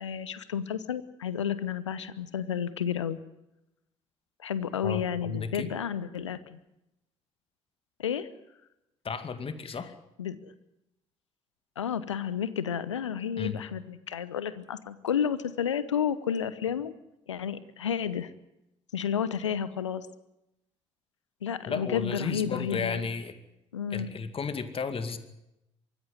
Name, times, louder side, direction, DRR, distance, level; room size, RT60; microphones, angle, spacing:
voice 1, 0.0-3.2 4.4-6.6 8.0-8.3 10.2-10.5 11.8-16.9 17.3-18.3 18.9-20.1 21.4-23.1 23.7-24.1, left 8 dB, 85° left, 16 dB, 0.9 m, -31 dB
voice 2, 4.8-5.7 9.0-9.9 13.4-13.6 21.7-23.3 23.9-25.2, left 5 dB, 40° left, 10 dB, 2.3 m, -33 dB
24.0 x 14.5 x 9.5 m, 0.88 s
figure-of-eight pair, 50°, 15 cm